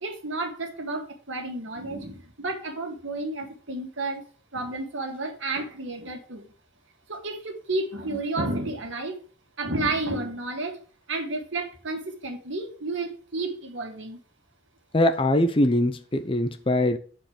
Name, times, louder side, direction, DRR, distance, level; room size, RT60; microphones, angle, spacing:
voice 1, 0.0-4.2 4.5-6.5 7.1-9.2 9.6-10.8 11.1-14.2, right 2 dB, 85° right, 1.7 m, -31 dB
voice 2, 14.9-17.0, left 1 dB, 25° left, 0.6 m, -22 dB
7.4 x 4.6 x 4.9 m
head